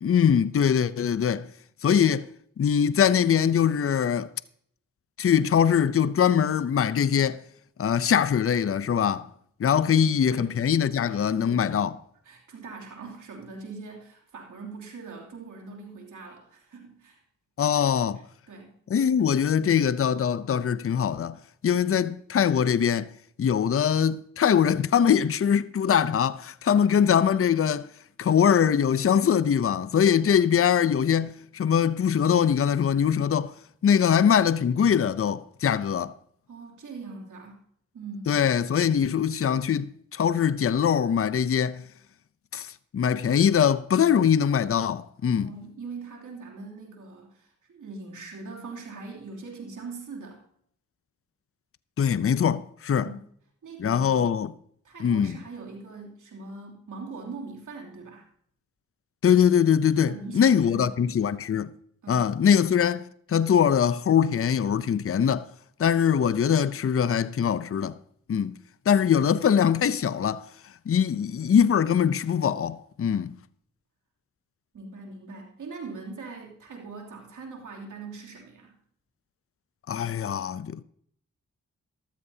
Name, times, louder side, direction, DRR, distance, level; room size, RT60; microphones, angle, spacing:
voice 1, 0.0-1.5 1.8-2.3 2.6-4.3 5.2-7.4 7.8-9.3 9.6-11.9 17.6-18.2 18.9-21.4 21.6-23.1 23.4-27.9 28.2-33.5 33.8-36.1 38.3-41.8 42.5-45.5 52.0-53.1 53.8-54.5 55.0-55.4 59.2-61.7 62.1-65.5 65.8-67.9 68.3-68.5 68.9-70.4 70.9-73.4 79.9-80.8, left 8 dB, 45° left, 0.6 m, -22 dB
voice 2, 10.0-10.5 11.1-11.8 12.2-17.2 18.5-18.8 36.5-37.6 37.9-38.3 45.4-50.4 53.0-53.2 53.6-54.2 54.8-58.3 60.1-61.0 61.3-61.4 62.0-62.3 74.7-78.7, right 4 dB, 75° right, 2.9 m, -42 dB
13.5 x 13.0 x 2.8 m
cardioid pair, 40°, 31 cm